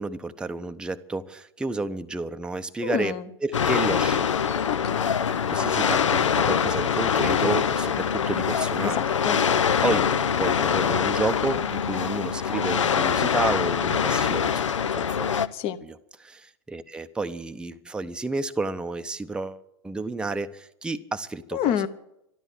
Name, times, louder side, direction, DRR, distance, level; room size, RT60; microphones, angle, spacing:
voice 1, 0.0-3.1 3.4-4.6 5.5-9.0 9.8-10.1 10.4-14.6 14.9-15.3 15.8-21.7, right 3 dB, 5° right, 8 dB, 0.7 m, -31 dB
voice 2, 2.8-3.3 4.7-5.0 8.8-9.4 15.5-15.8 21.5-21.9, left 10 dB, 40° left, 12 dB, 1.1 m, -28 dB
sound 1, 3.5-15.5, left 7 dB, 75° left, 0.7 m, -24 dB
12.5 x 12.5 x 8.3 m, 0.82 s
figure-of-eight pair, 95°, 16 cm